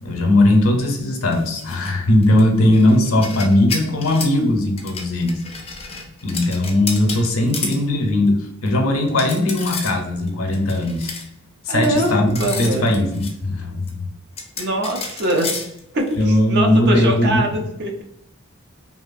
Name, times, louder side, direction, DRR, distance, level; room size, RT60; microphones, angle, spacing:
voice 1, 0.0-5.4 6.2-11.1 11.7-14.1 16.2-17.4, left 1 dB, 75° left, 2 dB, 0.6 m, -18 dB
sound 1, 1.3-1.9 2.2-4.4 4.8-7.8 8.3-8.4 8.7-8.8 9.1-10.0 10.3-11.3 11.8-13.3 13.9-14.0 14.4-16.2, left 4 dB, 30° left, 0.5 m, -31 dB
voice 2, 11.7-12.8 14.6-15.6 15.9-17.9, right 1 dB, 50° right, 2 dB, 0.5 m, -22 dB
2.8 x 2.4 x 2.5 m, 0.77 s
head